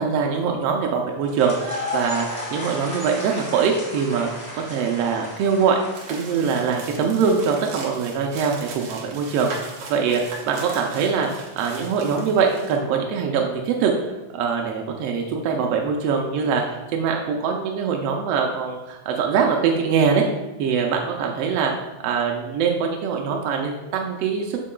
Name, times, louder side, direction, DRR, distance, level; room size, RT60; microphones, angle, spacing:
voice 1, 0.0-5.8 6.1-11.3 11.6-20.2 20.6-21.7 22.0-24.6, right 6 dB, 80° right, 1 dB, 1.4 m, -23 dB
sound 1, 1.3-7.3, left 1 dB, 75° left, 0.4 m, -34 dB
sound 2, 5.9-12.8, right 3 dB, 65° right, 1.8 m, -38 dB
7.4 x 7.2 x 2.3 m, 1.1 s
omnidirectional pair, 3.3 m